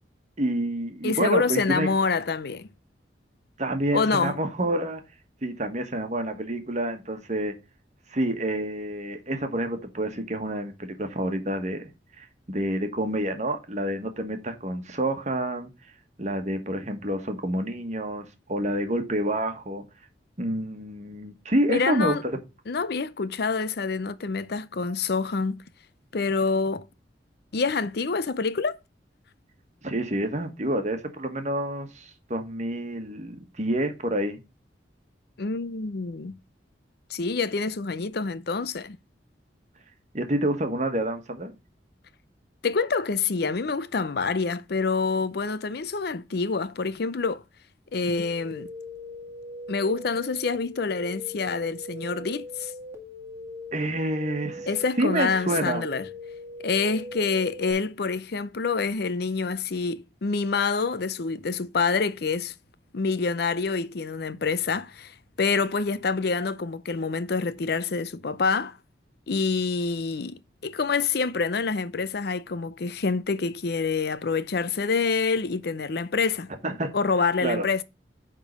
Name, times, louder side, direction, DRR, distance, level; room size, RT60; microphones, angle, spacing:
voice 1, 0.4-1.9 3.6-5.0 5.4-7.5 8.1-11.9 12.2-15.7 16.2-19.8 20.4-22.4 29.8-34.4 40.1-41.5 53.7-54.7 55.0-55.8 76.6-76.9 77.4-77.6, right 1 dB, 40° right, 1.4 m, -28 dB
voice 2, 1.0-2.7 3.9-4.4 21.7-22.2 22.7-25.6 26.1-26.8 27.5-28.8 35.4-36.4 37.1-39.0 42.6-47.4 47.9-48.7 49.7-52.7 54.7-56.0 56.6-62.5 62.9-68.8 69.3-76.5 76.9-77.8, left 4 dB, 60° left, 0.6 m, -27 dB
sound 1, 48.2-57.7, left 1 dB, 15° right, 1.9 m, -40 dB
9.3 x 3.8 x 5.2 m
head